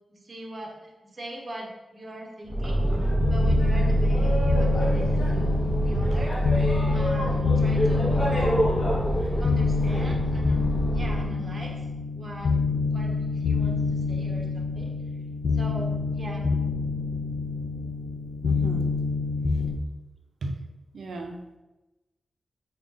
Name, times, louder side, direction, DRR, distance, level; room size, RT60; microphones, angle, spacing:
voice 1, 0.1-2.8 3.3-6.3 6.9-8.3 9.4-11.8 12.1-12.6 12.9-14.9 15.5-16.5, right 1 dB, 35° right, 0 dB, 0.6 m, -41 dB
Boat Water vehicle, 2.5-11.3, right 1 dB, 35° left, 0.9 m, -25 dB
sound 1, 3.2-19.8, left 4 dB, 70° left, 0.3 m, -27 dB
voice 2, 5.7-6.3 18.4-18.9 20.4-20.6 20.9-21.4, right 2 dB, 85° right, 3 dB, 0.4 m, -33 dB
3.6 x 2.2 x 3.7 m, 1.1 s
wide cardioid pair, 125°, 0 cm